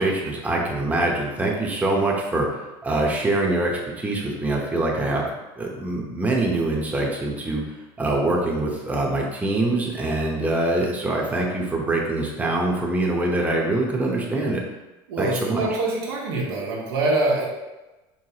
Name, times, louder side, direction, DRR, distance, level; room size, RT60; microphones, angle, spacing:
voice 1, 0.0-2.5 2.8-5.3 5.6-7.6 8.0-14.6 15.2-15.6, right 2 dB, 10° right, -2 dB, 0.9 m, -24 dB
voice 2, 15.1-17.5, right 2 dB, 90° right, -3 dB, 1.2 m, -24 dB
4.9 x 3.4 x 2.9 m, 1.1 s
supercardioid pair, 105°, 13 cm